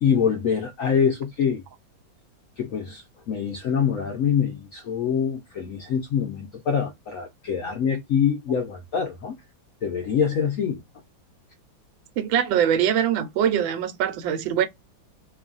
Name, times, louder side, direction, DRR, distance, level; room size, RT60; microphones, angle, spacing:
voice 1, 0.0-1.6 2.6-9.4 9.8-10.8, left 7 dB, 70° left, 0.7 m, -25 dB
voice 2, 12.2-14.7, right 9 dB, 90° right, 1.4 m, -23 dB
3.1 x 2.3 x 2.4 m
omnidirectional pair, 2.0 m